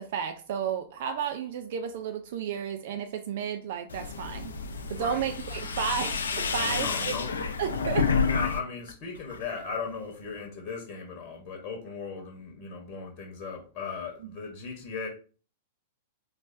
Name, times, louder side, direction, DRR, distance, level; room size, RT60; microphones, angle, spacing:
voice 1, 0.0-4.5 4.9-7.1 7.6-8.1 14.2-14.4, right 8 dB, 50° right, 7 dB, 0.4 m, -32 dB
sound 1, 3.9-8.6 8.9-9.5, left 5 dB, 70° left, 0.6 m, -30 dB
voice 2, 4.9-5.3 6.7-7.4 8.2-15.1, left 5 dB, 35° left, 1 dB, 1.1 m, -37 dB
4.1 x 3.4 x 2.6 m, 0.38 s
figure-of-eight pair, 100°, 0 cm